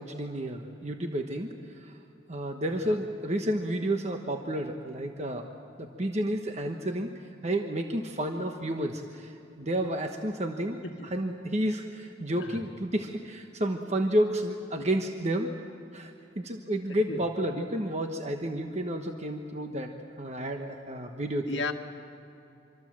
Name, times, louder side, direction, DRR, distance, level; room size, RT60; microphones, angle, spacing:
voice 1, 0.0-1.5 1.8-1.9 2.3-5.5 5.8-7.1 7.4-10.8 11.1-15.5 15.9-16.1 16.4-19.9 20.2-21.6, right 1 dB, 35° right, 4 dB, 1.2 m, -31 dB
voice 2, 16.9-17.2 21.5-21.7, left 3 dB, 70° left, 4 dB, 1.6 m, -35 dB
25.5 x 24.5 x 7.5 m, 2.7 s
head